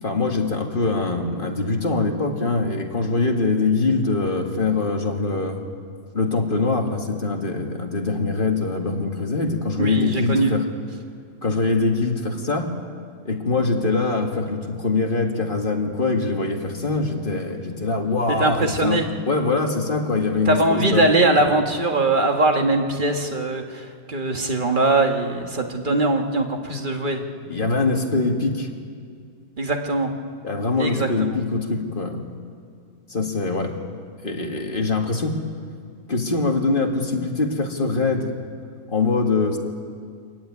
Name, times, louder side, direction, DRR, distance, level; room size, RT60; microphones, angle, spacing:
voice 1, 0.0-5.6 6.1-10.6 11.4-12.7 13.2-21.0 27.4-28.7 30.4-32.2 33.1-33.8 34.2-35.4 36.1-38.3 38.9-39.6, left 3 dB, 35° left, 2 dB, 2.0 m, -23 dB
voice 2, 9.8-10.5 18.3-19.1 20.4-27.2 29.6-30.1 30.8-31.1, right 2 dB, 35° right, 3 dB, 1.8 m, -21 dB
24.5 x 14.5 x 9.6 m, 2.2 s
omnidirectional pair, 1.5 m